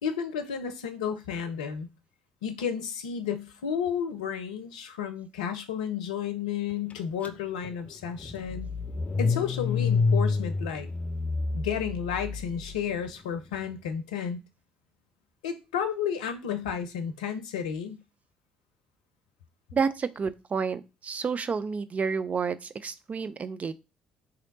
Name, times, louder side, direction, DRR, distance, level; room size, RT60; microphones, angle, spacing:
voice 1, 0.0-1.9 2.4-8.7 9.2-10.9 11.5-14.4 15.4-18.0, left 8 dB, 85° left, 0.5 m, -32 dB
Car / Engine starting, 7.2-7.3 7.6-12.9, left 4 dB, 40° left, 0.6 m, -28 dB
voice 2, 19.7-23.7, right 5 dB, 40° right, 0.5 m, -30 dB
3.1 x 2.8 x 4.0 m
hypercardioid pair, 50°, 4 cm